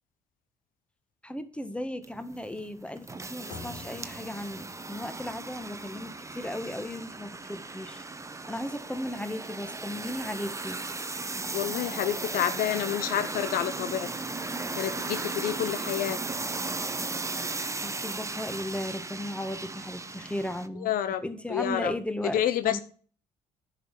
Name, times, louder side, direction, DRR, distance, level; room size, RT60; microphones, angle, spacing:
voice 1, 1.2-8.0 8.5-10.8 17.8-22.8, left 1 dB, 5° left, 10 dB, 1.6 m, -36 dB
sound 1, 2.0-20.7, right 3 dB, 20° right, 1.0 m, -36 dB
sound 2, 3.5-8.2, left 4 dB, 85° left, 3.6 m, -51 dB
voice 2, 11.5-14.1 14.8-16.2 20.8-21.2 21.5-21.9 22.2-22.8, left 11 dB, 65° left, 12 dB, 0.7 m, -29 dB
10.5 x 5.8 x 5.8 m, 0.42 s
hypercardioid pair, 50°, 16 cm